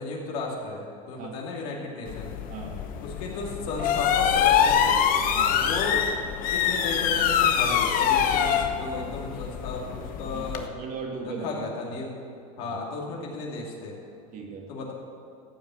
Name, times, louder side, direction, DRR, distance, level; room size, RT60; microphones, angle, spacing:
voice 1, 0.0-2.3 3.0-5.0 5.6-6.0 6.5-10.7 11.2-12.1 12.6-13.9 14.7-14.9, left 3 dB, 70° left, -2 dB, 2.5 m, -34 dB
sound 1, 2.1-10.7, left 8 dB, 45° left, 1.0 m, -24 dB
voice 2, 2.5-2.9 5.3-5.6 10.3-11.6 12.6-12.8 14.3-14.7, right 4 dB, 45° right, 1 dB, 2.5 m, -38 dB
14.5 x 5.8 x 7.6 m, 2.6 s
hypercardioid pair, 105°, 20 cm